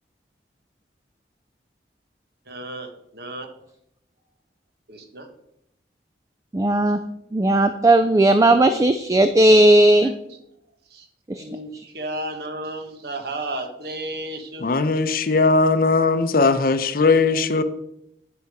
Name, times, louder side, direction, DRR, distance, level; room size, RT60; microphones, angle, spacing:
voice 1, 2.5-3.5 4.9-5.3 10.0-10.1 10.9-14.7, right 1 dB, 60° right, 5 dB, 1.3 m, -33 dB
voice 2, 6.5-7.0 7.3-10.1 11.3-11.4, right 1 dB, 20° right, 9 dB, 0.3 m, -16 dB
voice 3, 14.6-17.6, left 3 dB, 55° left, 11 dB, 0.6 m, -19 dB
9.4 x 5.7 x 4.8 m, 0.80 s
head